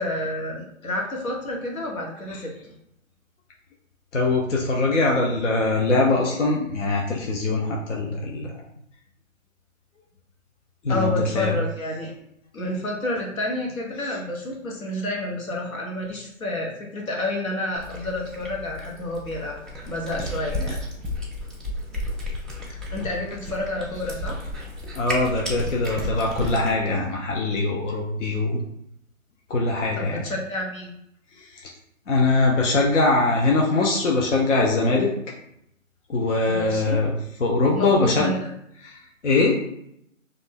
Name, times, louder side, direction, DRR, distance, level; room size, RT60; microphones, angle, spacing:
voice 1, 0.0-2.7 10.9-12.1 12.5-19.6 19.9-20.8 22.9-24.4 30.0-30.9 36.5-37.0 37.8-38.5, left 1 dB, 90° left, -1 dB, 1.0 m, -29 dB
voice 2, 4.1-8.6 10.8-11.6 14.0-14.2 25.0-28.6 29.5-30.2 31.4-31.7 32.1-35.1 36.1-37.1 37.4-38.3 38.8-39.6, left 3 dB, 60° left, -1 dB, 0.6 m, -22 dB
Cat, 17.7-26.7, left 1 dB, ahead, 0.3 m, -33 dB
2.5 x 2.1 x 3.5 m, 0.75 s
hypercardioid pair, 175°, 41 cm